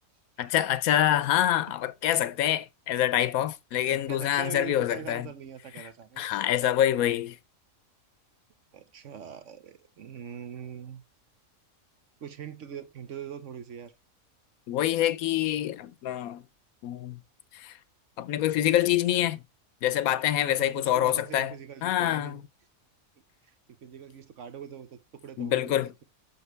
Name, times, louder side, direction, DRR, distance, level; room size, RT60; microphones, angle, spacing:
voice 1, 0.4-5.3 5.8-5.9 6.2-7.4 14.7-16.4 16.8-17.2 17.5-17.7 18.2-19.4 19.8-21.5 21.8-22.4 25.4-25.9, left 12 dB, 80° left, 1.1 m, -26 dB
voice 2, 3.9-6.2 8.7-11.0 12.2-13.9 20.4-22.4 23.5-26.0, right 8 dB, 60° right, 1.1 m, -42 dB
6.8 x 6.2 x 3.2 m
omnidirectional pair, 1.5 m